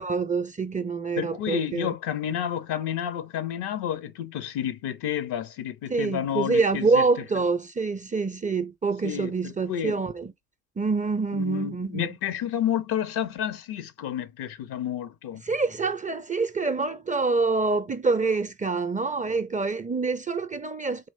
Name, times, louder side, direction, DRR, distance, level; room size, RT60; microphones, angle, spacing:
voice 1, 0.0-1.9 5.9-10.3 10.8-12.2 15.5-21.1, right 4 dB, 20° right, 0.5 m, -26 dB
voice 2, 1.2-7.0 9.0-10.0 11.3-15.4, left 10 dB, 60° left, 0.7 m, -30 dB
4.1 x 2.9 x 2.6 m
hypercardioid pair, 40°, 43 cm